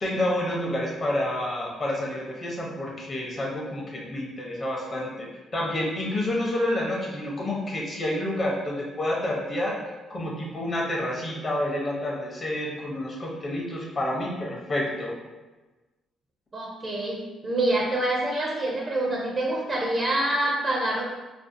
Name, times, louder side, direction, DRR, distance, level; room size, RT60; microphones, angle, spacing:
voice 1, 0.0-5.3 5.5-15.1, left 1 dB, 35° left, -2 dB, 0.6 m, -29 dB
voice 2, 16.5-21.0, right 1 dB, 35° right, -2 dB, 0.5 m, -26 dB
2.5 x 2.3 x 2.5 m, 1.2 s
cardioid pair, 90°, 0 cm